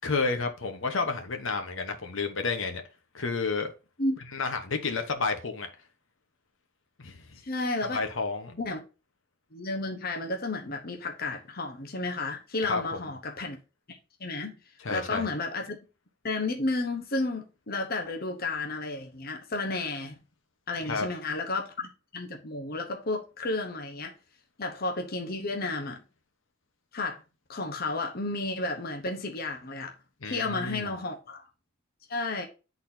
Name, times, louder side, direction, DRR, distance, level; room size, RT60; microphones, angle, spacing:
voice 1, 0.0-2.8 3.1-3.7 4.3-5.7 7.0-7.4 7.9-8.6 12.6-12.8 14.8-15.3 20.8-21.1 30.2-30.9, left 4 dB, 75° left, 1.1 m, -30 dB
voice 2, 7.4-8.0 8.6-8.8 9.5-13.6 13.9-14.6 14.9-15.8 16.2-20.1 20.7-24.1 24.6-26.0 26.9-27.2 27.5-29.9 30.2-31.5 32.1-32.4, left 2 dB, 50° left, 1.0 m, -32 dB
10.5 x 4.1 x 2.7 m
head